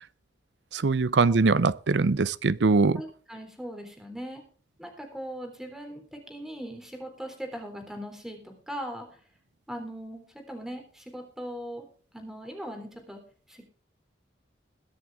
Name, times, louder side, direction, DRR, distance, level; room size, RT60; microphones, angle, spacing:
voice 1, 0.7-3.0, right 4 dB, 75° right, 0.6 m, -22 dB
voice 2, 2.9-4.4 4.8-9.1 9.7-11.9 12.1-13.2 13.5-13.7, equal, 5° right, 3.6 m, -39 dB
21.5 x 7.7 x 3.5 m
head